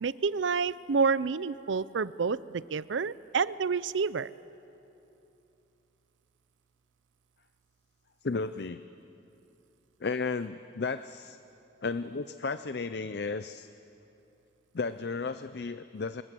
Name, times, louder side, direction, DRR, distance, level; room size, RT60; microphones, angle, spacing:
voice 1, 0.0-4.3, right 5 dB, 80° right, 18 dB, 0.5 m, -29 dB
voice 2, 8.2-8.8 10.0-11.4 11.8-13.7 14.7-16.2, left 4 dB, 60° left, 12 dB, 0.5 m, -33 dB
25.0 x 21.5 x 7.7 m, 2.9 s
head